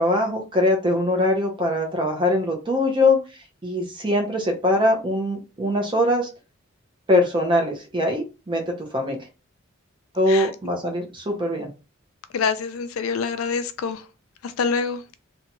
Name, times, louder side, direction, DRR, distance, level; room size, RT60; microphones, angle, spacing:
voice 1, 0.0-3.2 3.6-6.3 7.1-9.2 10.1-11.7, left 1 dB, 25° right, 0.7 m, -22 dB
voice 2, 12.3-14.0 14.4-15.0, left 5 dB, 80° left, 0.4 m, -26 dB
2.6 x 2.2 x 2.9 m
head